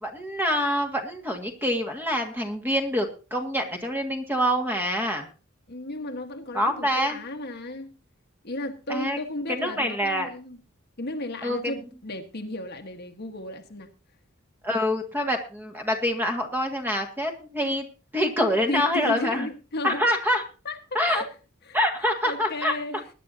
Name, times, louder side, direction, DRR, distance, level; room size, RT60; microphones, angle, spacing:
voice 1, 0.0-5.3 6.5-7.2 8.9-9.2 9.5-10.3 11.4-11.7 14.6-17.9 18.1-19.5 19.8-20.4 20.9-21.2 21.7-22.7, equal, 10° right, 4 dB, 1.9 m, -26 dB
voice 2, 5.7-7.9 8.4-10.6 11.0-13.9 18.7-20.0 20.6-21.3 21.6-23.0, left 1 dB, 50° left, 5 dB, 1.4 m, -34 dB
20.5 x 10.5 x 2.8 m, 0.33 s
head